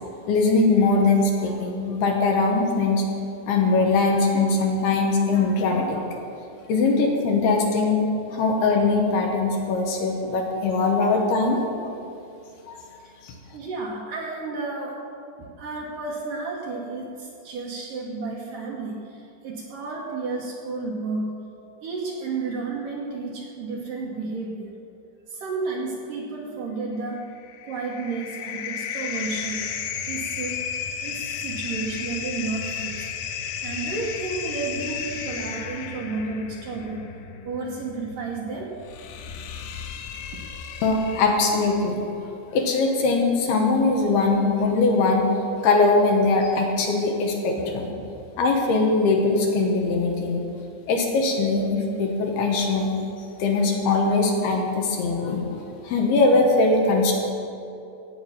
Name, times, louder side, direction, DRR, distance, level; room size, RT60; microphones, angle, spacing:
voice 1, 0.3-3.0 3.5-6.0 6.7-8.0 8.3-11.6 12.7-12.8 13.2-13.3 40.8-42.1 42.5-45.3 45.6-47.9 48.4-50.4 50.9-53.0 53.4-57.1, left 3 dB, 70° left, 1 dB, 2.8 m, -21 dB
voice 2, 13.5-15.0 15.4-21.4 21.8-24.7 25.3-27.3 27.6-29.7 30.1-30.6 31.0-33.0 33.6-37.1 37.4-38.8 40.3-40.4 47.6-47.7, right 3 dB, 75° right, -3 dB, 2.0 m, -32 dB
sound 1, 27.2-41.8, left 7 dB, 85° left, 3.5 m, -34 dB
17.5 x 8.1 x 5.8 m, 2.7 s
omnidirectional pair, 5.6 m